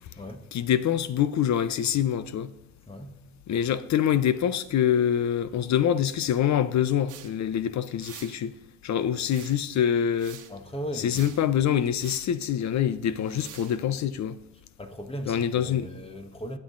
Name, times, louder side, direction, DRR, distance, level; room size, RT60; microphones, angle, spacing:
voice 1, 0.5-2.5 3.5-8.6 8.8-10.4 11.0-14.4 15.3-15.9, left 9 dB, 50° left, 0.8 m, -25 dB
sound 1, 7.1-7.3 8.0-8.4 9.3-9.7 10.1-10.5 11.1-11.4 12.0-12.3 13.2-13.8, right 11 dB, 55° right, 1.3 m, -46 dB
voice 2, 10.5-11.2 14.8-16.6, equal, 15° left, 1.4 m, -37 dB
20.5 x 7.8 x 3.9 m
supercardioid pair, 85°, 37 cm